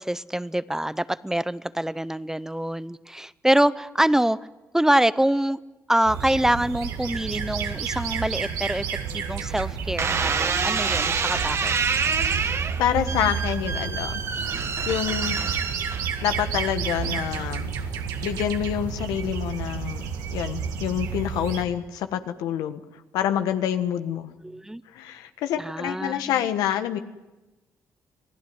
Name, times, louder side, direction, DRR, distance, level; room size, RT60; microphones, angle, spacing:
voice 1, 0.0-4.4 4.7-5.6 5.9-8.9 9.1-11.7 24.4-24.8 25.6-26.3, right 1 dB, 5° right, 17 dB, 0.7 m, -25 dB
sound 1, 6.0-21.6, right 6 dB, 85° right, 2.1 m, -31 dB
sound 2, 10.0-16.4 17.0-17.5, right 5 dB, 45° right, 1.5 m, -27 dB
voice 2, 12.8-14.2 14.8-15.4 16.2-17.7 18.2-20.0 20.3-22.8 23.1-24.3 24.9-27.0, left 10 dB, 90° left, 9 dB, 1.3 m, -27 dB
26.5 x 16.5 x 9.5 m, 1.1 s
supercardioid pair, 70°, 6 cm